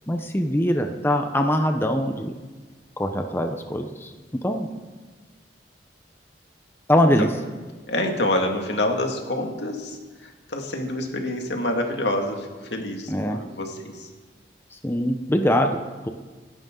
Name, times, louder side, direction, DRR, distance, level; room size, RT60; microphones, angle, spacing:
voice 1, 0.1-2.3 3.0-4.1 4.4-4.7 6.9-7.3 13.1-13.4 14.8-16.1, equal, 15° left, 5 dB, 0.8 m, -22 dB
voice 2, 7.9-14.1, left 1 dB, 75° left, 2 dB, 2.2 m, -27 dB
25.5 x 11.0 x 3.9 m, 1.3 s
head